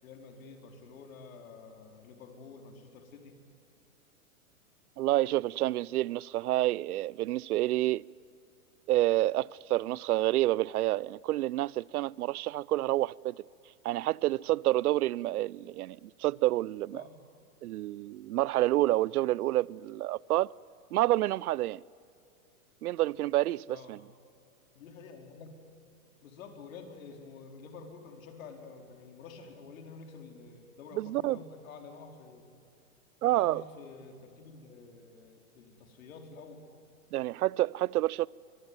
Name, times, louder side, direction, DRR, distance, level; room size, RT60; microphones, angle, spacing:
voice 1, 0.0-3.4 16.9-17.2 23.7-23.9 24.7-25.5 26.2-32.4 33.2-36.6, left 4 dB, 65° left, 4.5 m, -49 dB
voice 2, 5.0-8.1 8.9-13.4 13.8-17.0 17.6-20.5 20.9-21.8 22.8-24.0 31.0-31.4 33.2-33.6 37.1-38.3, right 16 dB, 90° right, 0.5 m, -28 dB
24.5 x 23.0 x 9.7 m
hypercardioid pair, 155°, 43 cm